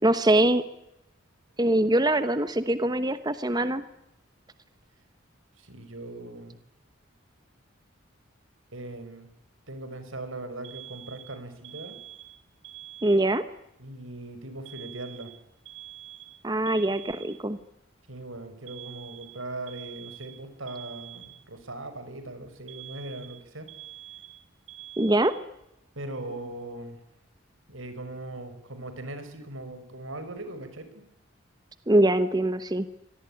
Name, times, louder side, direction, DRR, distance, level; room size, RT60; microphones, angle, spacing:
voice 1, 0.0-0.6 1.6-3.8 13.0-13.4 16.4-17.6 25.0-25.4 31.9-32.9, right 1 dB, 20° right, 12 dB, 1.0 m, -23 dB
voice 2, 5.6-6.6 8.7-9.3 9.7-12.0 13.8-15.3 18.1-23.7 26.0-27.0 27.7-30.9, right 2 dB, 85° right, 10 dB, 5.5 m, -39 dB
Alarm, 10.6-13.6 14.7-17.6 18.7-21.6 22.7-25.7, right 13 dB, 65° right, 2.4 m, -46 dB
25.5 x 18.5 x 10.0 m, 0.85 s
head